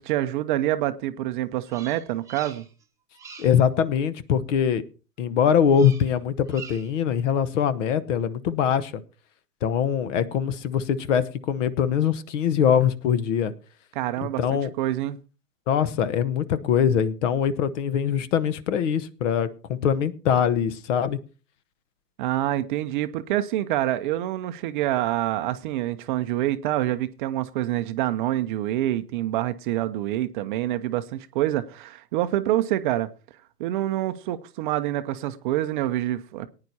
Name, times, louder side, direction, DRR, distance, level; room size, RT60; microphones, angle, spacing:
voice 1, 0.0-2.6 13.9-15.2 22.2-33.1 33.6-36.5, right 14 dB, 35° right, 0.6 m, -26 dB
Bird vocalization bird call bird song, 1.7-2.8 3.1-3.6 5.7-6.2 6.5-7.0, right 5 dB, 5° right, 1.1 m, -44 dB
voice 2, 3.4-4.8 5.2-9.0 9.6-13.5 14.4-14.7 15.7-21.2, left 8 dB, 50° left, 1.0 m, -23 dB
18.5 x 9.7 x 2.7 m
hypercardioid pair, 120°, 47 cm